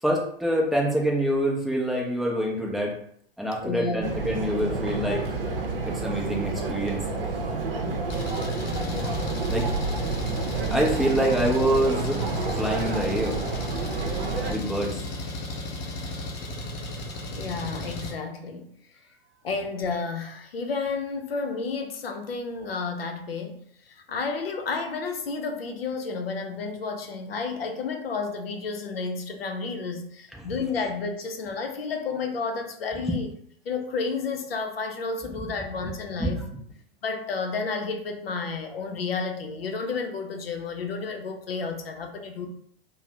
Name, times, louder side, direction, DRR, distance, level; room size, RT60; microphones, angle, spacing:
voice 1, 0.0-3.0 3.4-5.4 5.8-7.0 9.5-9.7 10.7-12.2 12.5-13.4 14.5-15.0 33.0-33.2 35.3-35.5 36.2-36.4, right 1 dB, ahead, -2 dB, 0.4 m, -26 dB
voice 2, 3.6-4.1 17.4-18.7 19.4-23.6 23.9-33.3 33.6-36.4 37.0-42.5, left 4 dB, 75° left, 5 dB, 0.6 m, -31 dB
sound 1, 4.0-14.5, right 3 dB, 70° right, 0.6 m, -29 dB
Engine, 8.1-18.1, left 1 dB, 40° left, 0.7 m, -35 dB
2.6 x 2.0 x 3.2 m, 0.65 s
figure-of-eight pair, 100°, 29 cm